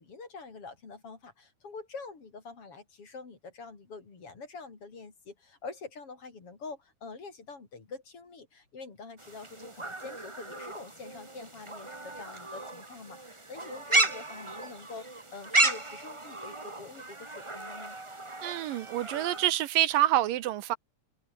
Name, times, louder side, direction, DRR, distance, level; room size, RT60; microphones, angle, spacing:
voice 1, 0.0-18.0, left 4 dB, 40° left, 4.5 m, -46 dB
sound 1, 9.2-19.5, right 2 dB, 45° right, 0.4 m, -33 dB
voice 2, 18.4-20.8, right 13 dB, 80° right, 2.7 m, -27 dB
omnidirectional pair, 4.0 m